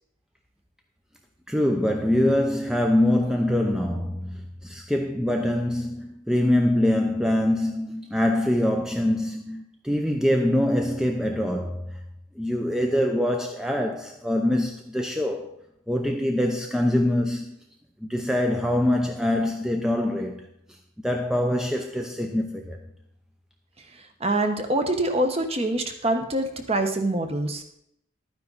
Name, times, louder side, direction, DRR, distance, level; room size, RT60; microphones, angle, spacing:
voice 1, 1.5-12.0 12.4-15.6 15.9-17.6 18.0-20.5 21.0-22.8, left 1 dB, 5° right, 0.6 m, -24 dB
voice 2, 24.2-27.6, right 1 dB, 30° right, 1.1 m, -25 dB
12.0 x 9.7 x 4.1 m
head